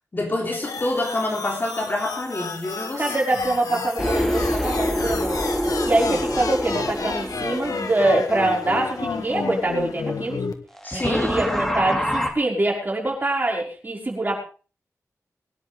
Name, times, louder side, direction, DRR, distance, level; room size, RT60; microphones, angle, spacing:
voice 1, 0.1-3.0 10.8-11.4, left 2 dB, 35° left, 0 dB, 3.6 m, -27 dB
sound 1, 0.5-10.5, left 4 dB, 90° left, 1.6 m, -31 dB
voice 2, 3.0-5.4 5.8-10.4 10.9-14.4, right 2 dB, 30° right, -1 dB, 5.5 m, -24 dB
sound 2, 4.0-8.5 10.8-12.3, equal, 5° left, 2.5 m, -26 dB
22.5 x 11.0 x 3.6 m, 0.37 s
wide cardioid pair, 120°, 6 cm